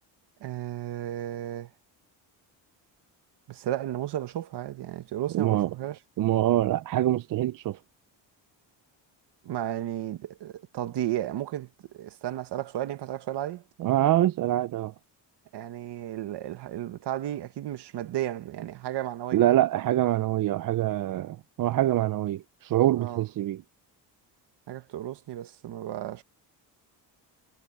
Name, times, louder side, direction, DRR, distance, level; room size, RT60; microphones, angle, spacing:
voice 1, 0.4-1.7 3.5-6.0 9.4-11.7 11.9-13.6 15.5-19.5 23.0-23.2 24.7-26.2, right 12 dB, 65° right, 1.4 m, -33 dB
voice 2, 5.3-5.7 6.2-7.8 13.8-14.9 19.3-23.6, right 13 dB, 50° right, 0.5 m, -25 dB
cardioid pair, 145°, 44 cm